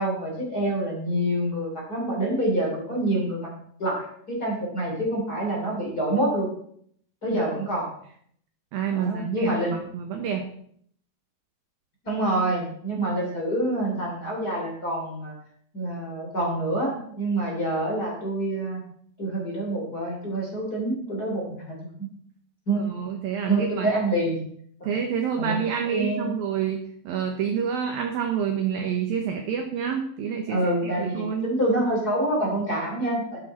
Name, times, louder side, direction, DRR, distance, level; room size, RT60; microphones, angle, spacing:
voice 1, 0.0-3.5 3.8-6.5 7.2-7.9 8.9-9.9 12.0-15.3 15.7-18.8 19.2-21.8 22.7-22.9 23.5-24.4 25.4-25.5 25.9-26.3 30.5-33.4, right 1 dB, 25° left, -2 dB, 2.7 m, -26 dB
voice 2, 8.7-10.5 22.7-24.0 24.8-31.5, right 7 dB, 75° right, 4 dB, 2.1 m, -28 dB
12.0 x 11.0 x 4.2 m, 0.64 s
omnidirectional pair, 5.6 m